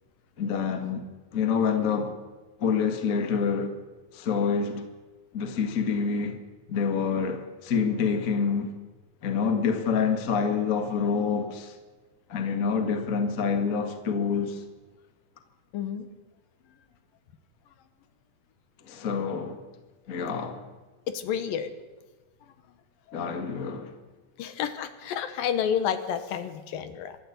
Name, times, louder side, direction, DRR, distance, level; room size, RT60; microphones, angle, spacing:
voice 1, 0.4-1.0 1.3-2.2 2.6-3.7 4.1-4.8 5.3-6.4 6.7-8.7 9.2-11.7 12.3-14.6 18.9-19.6 20.1-20.6 23.1-23.9, left 6 dB, 45° left, 1.1 m, -27 dB
voice 2, 15.7-16.1 21.1-21.7 23.1-23.2 24.4-27.2, left 8 dB, 75° left, 2.7 m, -30 dB
23.5 x 13.5 x 8.3 m
omnidirectional pair, 4.3 m